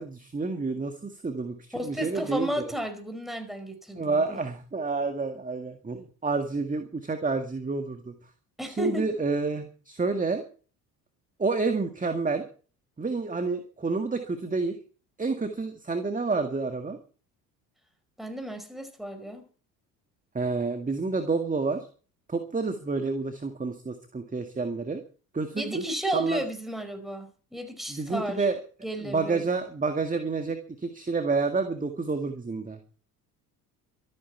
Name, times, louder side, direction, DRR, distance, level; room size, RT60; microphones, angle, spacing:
voice 1, 0.0-2.5 4.0-8.1 8.8-10.4 11.4-12.4 13.0-14.8 15.2-17.0 20.3-21.9 22.3-25.0 25.3-25.8 26.1-26.4 27.9-28.6 29.0-32.8, right 4 dB, 15° right, 7 dB, 2.0 m, -29 dB
voice 2, 1.7-4.4 8.6-9.0 18.2-19.4 25.5-28.5 28.8-29.4, equal, ahead, 6 dB, 5.2 m, -33 dB
25.0 x 9.5 x 4.6 m, 0.40 s
figure-of-eight pair, 55°, 48 cm